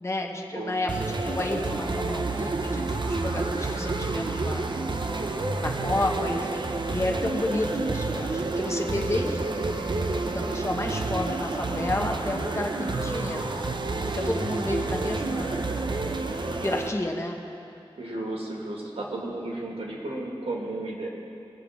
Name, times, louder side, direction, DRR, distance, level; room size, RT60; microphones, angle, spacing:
voice 1, 0.0-0.9 1.2-4.7 5.2-13.6 14.1-15.7 16.6-17.4, left 2 dB, 30° left, 1 dB, 1.1 m, -31 dB
voice 2, 0.5-1.0 14.8-15.1 18.0-21.1, right 2 dB, 85° right, -2 dB, 1.9 m, -34 dB
sound 1, 0.9-16.9, right 3 dB, 55° right, 0.6 m, -29 dB
20.0 x 6.9 x 3.6 m, 2.6 s
wide cardioid pair, 70°, 10 cm